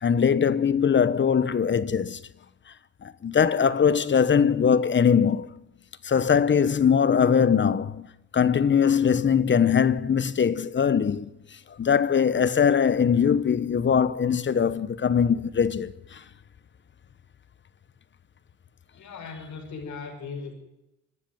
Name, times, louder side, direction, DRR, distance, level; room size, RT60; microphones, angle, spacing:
voice 1, 0.0-2.2 3.0-5.5 6.0-8.1 8.3-11.3 11.8-16.2, left 7 dB, 40° left, 1.1 m, -21 dB
voice 2, 18.9-20.5, left 5 dB, 70° left, 6.0 m, -38 dB
25.5 x 12.5 x 9.3 m
cardioid pair, 90°, 30 cm